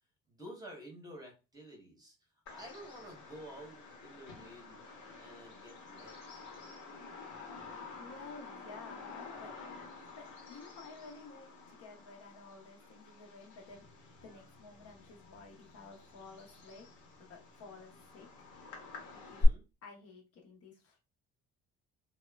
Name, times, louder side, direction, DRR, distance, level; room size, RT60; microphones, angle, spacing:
voice 1, 0.3-2.1 2.5-4.8 5.2-6.4 19.2-19.6, equal, 15° right, 0 dB, 0.8 m, -51 dB
Bird vocalization bird call bird song, 2.5-19.5, left 1 dB, 85° left, 1.0 m, -44 dB
voice 2, 8.0-9.5 10.1-16.9 17.2-18.5 19.3-19.5 19.8-21.0, left 4 dB, 55° left, 1 dB, 0.7 m, -52 dB
2.8 x 2.1 x 2.2 m, 0.30 s
cardioid pair, 135°, 30 cm